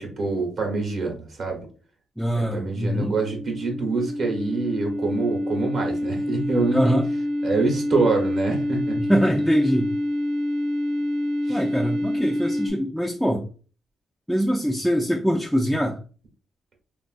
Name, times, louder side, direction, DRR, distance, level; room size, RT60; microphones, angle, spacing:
voice 1, 0.0-1.6 2.3-7.0 7.4-9.0 11.5-11.6, right 3 dB, 50° right, 2 dB, 0.9 m, -26 dB
voice 2, 2.2-3.1 6.7-7.0 9.0-9.9 11.5-13.5 14.3-16.0, equal, ahead, 0 dB, 0.4 m, -23 dB
sound 1, 2.5-12.7, left 1 dB, 90° right, 0.6 m, -27 dB
3.1 x 2.4 x 2.4 m, 0.38 s
cardioid pair, 90°, 0 cm